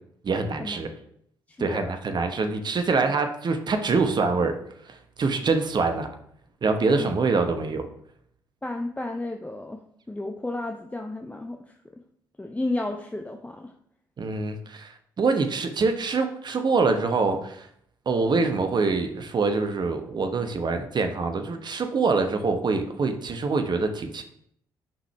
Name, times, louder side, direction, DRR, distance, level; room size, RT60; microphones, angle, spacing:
voice 1, 0.2-0.9 1.6-4.6 4.8-6.1 6.6-7.9 14.2-17.7 18.0-24.2, right 4 dB, 40° right, 6 dB, 1.1 m, -25 dB
voice 2, 1.5-1.9 6.9-7.1 8.6-9.8 10.1-11.7 12.4-13.7, left 2 dB, 15° left, 3 dB, 0.7 m, -32 dB
8.8 x 5.0 x 3.4 m, 0.69 s
figure-of-eight pair, 40°, 11 cm